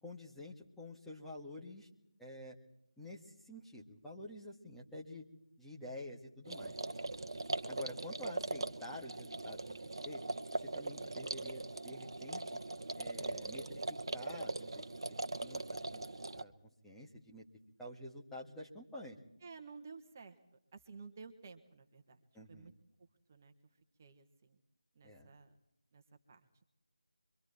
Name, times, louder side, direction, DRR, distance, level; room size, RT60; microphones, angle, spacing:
voice 1, 0.0-1.9 2.2-2.6 3.0-5.2 5.6-6.7 7.7-9.8 10.0-10.2 10.5-12.4 13.0-13.8 14.1-14.8 15.1-15.6 15.9-16.1 16.4-16.5 16.8-17.5 17.8-19.2 22.3-22.7 25.0-25.3, left 1 dB, 5° left, -4 dB, 1.9 m, -49 dB
sound 1, 6.4-16.4, right 2 dB, 55° right, 1.3 m, -41 dB
voice 2, 19.4-20.4 20.7-22.2 22.5-22.7 23.3-23.5 24.0-24.6 24.9-25.6 25.9-26.0 26.3-26.6, right 4 dB, 30° right, 6 dB, 1.7 m, -53 dB
27.0 x 24.0 x 4.4 m, 0.82 s
figure-of-eight pair, 160°, 3 cm